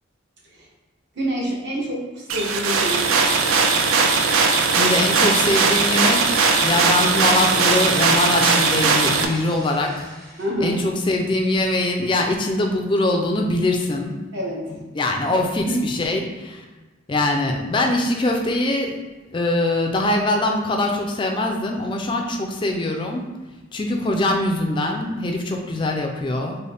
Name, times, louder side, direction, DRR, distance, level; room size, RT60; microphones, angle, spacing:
voice 1, 1.1-3.4 10.4-10.8 14.3-14.8 15.6-15.8, equal, 55° right, -4 dB, 0.9 m, -27 dB
sound 1, 2.3-9.2, right 4 dB, 90° right, 0.4 m, -19 dB
sound 2, 2.8-10.5, equal, 15° right, 0.6 m, -40 dB
voice 2, 4.7-10.1 10.6-14.1 14.9-16.6 17.1-19.0 19.3-23.3 23.7-26.6, left 2 dB, 25° left, 2 dB, 0.3 m, -22 dB
3.9 x 2.1 x 3.3 m, 1.2 s
head